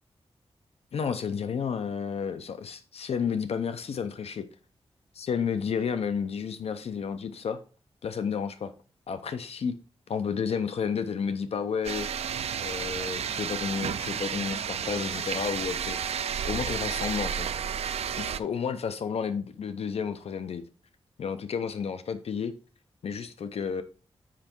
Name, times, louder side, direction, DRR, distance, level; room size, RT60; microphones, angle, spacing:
voice 1, 0.9-4.4 5.1-7.6 8.0-8.7 9.1-9.7 10.1-12.1 12.6-17.5 18.2-20.6 21.2-22.5 23.0-23.8, left 6 dB, 75° left, 0.6 m, -31 dB
sound 1, 11.8-18.4, right 8 dB, 80° right, 0.4 m, -32 dB
7.5 x 5.4 x 4.4 m
wide cardioid pair, 180°, 11 cm